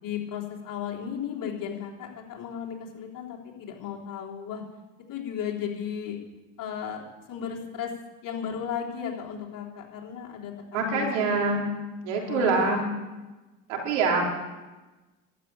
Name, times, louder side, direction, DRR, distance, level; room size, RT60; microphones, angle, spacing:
voice 1, 0.0-4.6 5.1-6.2 6.6-7.9 8.2-11.5 12.2-12.8, left 8 dB, 65° left, -1 dB, 3.4 m, -35 dB
voice 2, 10.7-11.6 12.0-12.8 13.7-14.2, right 4 dB, 90° right, 0 dB, 3.4 m, -25 dB
12.5 x 8.8 x 8.8 m, 1.2 s
supercardioid pair, 70°, 36 cm